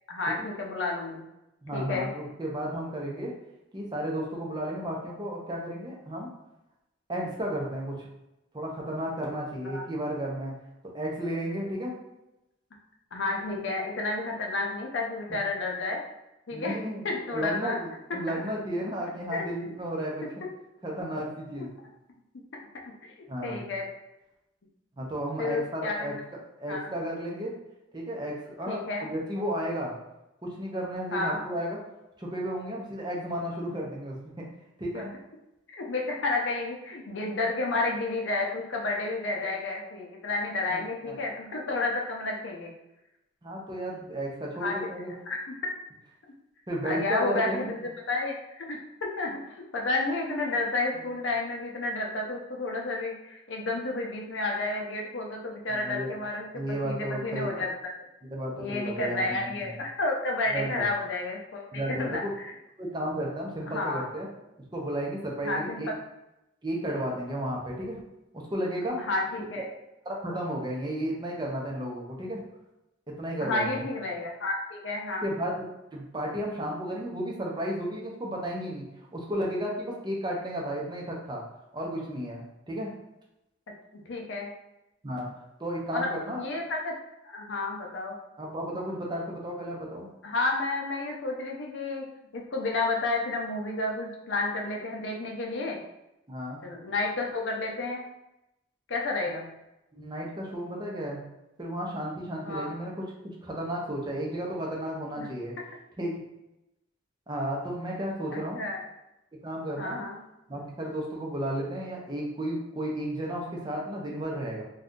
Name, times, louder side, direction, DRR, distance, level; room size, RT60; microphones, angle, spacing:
voice 1, 0.1-1.2 1.7-2.1 9.6-9.8 13.1-16.0 16.5-16.7 17.0-17.8 18.3-18.4 19.3-19.7 21.5-21.7 22.5-22.6 23.4-23.8 25.4-26.2 26.7-26.9 28.7-29.1 31.1-31.4 34.9-35.0 35.8-42.7 44.6-44.8 45.3-45.5 46.8-47.8 48.1-49.3 49.7-57.7 58.5-62.5 63.7-64.1 65.4-66.0 69.0-69.6 73.4-75.3 83.9-84.5 85.9-86.9 87.2-88.2 90.2-92.1 92.3-95.8 96.6-98.0 98.9-99.5 102.4-102.7 105.2-105.3 108.3-108.8 109.8-110.2, left 2 dB, 65° left, 0 dB, 0.6 m, -31 dB
voice 2, 1.6-3.3 3.7-6.3 7.1-8.1 8.5-10.5 10.9-12.0 16.5-20.3 20.8-21.7 23.3-23.6 25.0-26.1 26.6-27.5 27.9-29.9 30.4-31.8 32.2-34.5 34.8-35.1 40.7-41.1 43.4-45.1 46.7-47.6 55.7-56.1 56.5-57.5 58.2-59.7 60.5-60.9 61.7-62.3 62.8-64.3 64.7-65.9 66.6-68.0 68.3-69.0 69.4-69.6 70.0-72.4 73.2-73.8 75.2-75.7 75.9-78.8 79.1-81.4 81.7-82.9 85.0-85.3 85.6-86.4 88.4-90.1 96.3-96.6 99.9-101.2 101.6-103.1 103.4-105.5 106.0-106.2 107.3-108.6 109.4-110.0 110.5-114.6, equal, 20° right, -3 dB, 0.6 m, -33 dB
2.6 x 2.4 x 3.6 m, 0.92 s
head